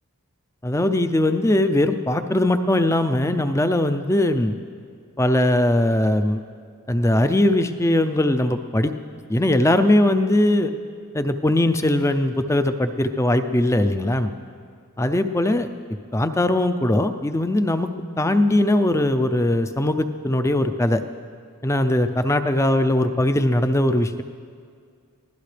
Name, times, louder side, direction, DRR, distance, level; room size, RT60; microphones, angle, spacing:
voice 1, 0.6-4.5 5.2-6.4 6.9-8.9 9.3-10.7 11.1-14.3 15.0-15.7 16.1-21.0 21.6-24.2, left 1 dB, 15° left, 9 dB, 0.5 m, -20 dB
23.5 x 16.5 x 3.4 m, 2.2 s
head